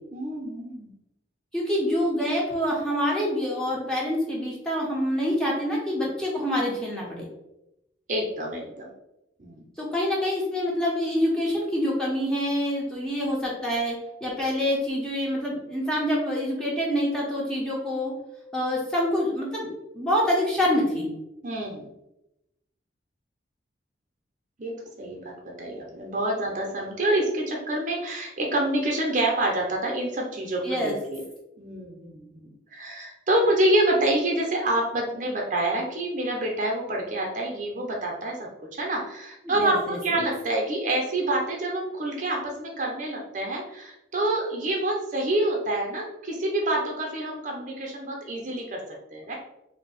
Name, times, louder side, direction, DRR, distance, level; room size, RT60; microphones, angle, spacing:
voice 1, 0.1-0.9 8.1-8.9 9.4-9.6 21.4-21.9 24.6-25.2 25.6-31.2 31.6-48.8 49.1-49.3, right 1 dB, 45° right, 0 dB, 0.6 m, -27 dB
voice 2, 1.5-7.3 9.8-14.0 14.2-18.1 18.5-19.7 19.9-21.1 30.6-31.0 39.4-40.3, equal, 5° left, -5 dB, 0.7 m, -26 dB
2.6 x 2.2 x 4.0 m, 0.88 s
head